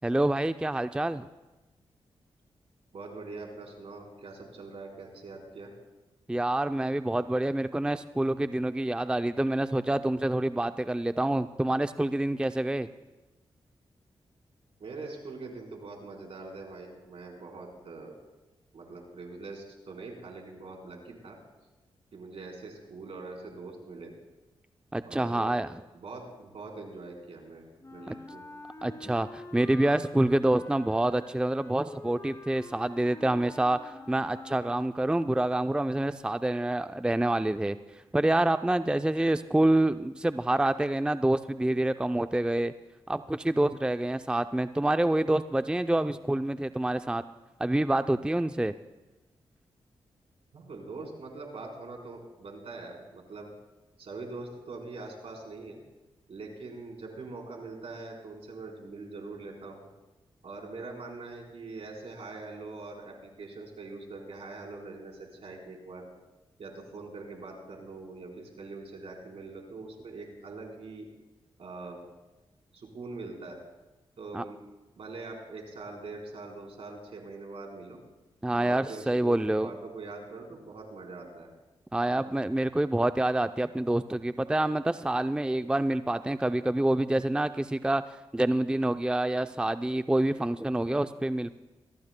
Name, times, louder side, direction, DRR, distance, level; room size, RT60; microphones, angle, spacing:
voice 1, 0.0-1.3 6.3-12.9 24.9-25.7 28.1-28.2 28.8-37.8 38.1-42.7 43.1-47.2 47.6-48.7 74.3-74.4 78.4-79.7 81.9-91.5, right 1 dB, 10° right, 10 dB, 0.4 m, -27 dB
voice 2, 2.9-5.7 14.8-18.1 18.7-21.4 22.1-24.1 25.1-25.5 25.9-27.6 27.9-28.5 50.5-53.5 54.0-55.8 56.3-59.9 60.4-66.1 66.6-71.1 71.6-72.0 72.7-73.6 74.2-74.6 75.0-78.0 78.5-81.5, right 3 dB, 70° right, -1 dB, 4.0 m, -43 dB
Wind instrument woodwind instrument, 27.8-35.2, left 2 dB, 30° left, 2.1 m, -46 dB
22.5 x 18.5 x 2.2 m, 1.1 s
cardioid pair, 50°, 11 cm